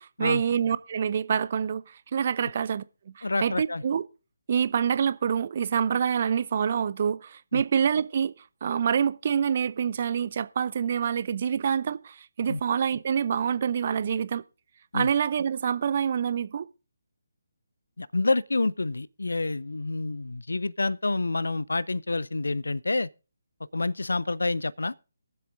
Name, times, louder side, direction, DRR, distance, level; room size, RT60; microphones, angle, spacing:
voice 1, 0.0-4.0 4.5-8.3 8.6-14.4 14.9-16.7, right 7 dB, 40° right, 0.5 m, -26 dB
voice 2, 3.2-3.8 7.5-7.6 12.5-12.6 14.9-15.1 18.0-23.1 23.7-24.9, left 3 dB, 65° left, 0.4 m, -28 dB
23.0 x 7.6 x 2.5 m
figure-of-eight pair, 145°, 0 cm